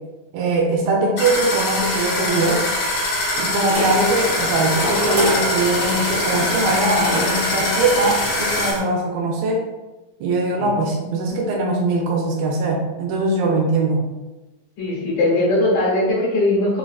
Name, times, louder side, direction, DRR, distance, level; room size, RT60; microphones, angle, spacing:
voice 1, 0.3-2.7 3.4-9.7 10.2-14.1, right 2 dB, 85° right, -1 dB, 2.4 m, -21 dB
sound 1, 1.2-8.7, left 2 dB, 70° left, 2.4 m, -23 dB
sound 2, 3.7-8.8, equal, 60° right, 1.6 m, -27 dB
voice 2, 14.8-16.8, left 2 dB, 85° left, -7 dB, 3.1 m, -19 dB
6.4 x 2.3 x 2.2 m, 1.1 s
omnidirectional pair, 4.0 m